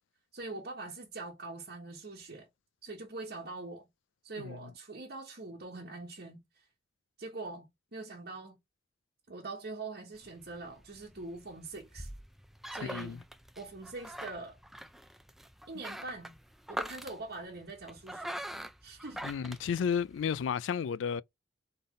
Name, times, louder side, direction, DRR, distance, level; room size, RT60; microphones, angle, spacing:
voice 1, 0.3-2.5 2.8-3.9 4.2-6.7 7.2-8.6 9.3-12.1 12.7-13.2 13.6-14.6 15.7-16.4 16.7-18.4 18.8-19.2, right 3 dB, 55° right, 1.2 m, -43 dB
voice 2, 4.4-4.7 12.8-13.2 19.2-21.2, left 7 dB, 80° left, 0.3 m, -33 dB
sound 1, 10.2-20.4, equal, ahead, 0.4 m, -44 dB
4.0 x 3.7 x 3.7 m
head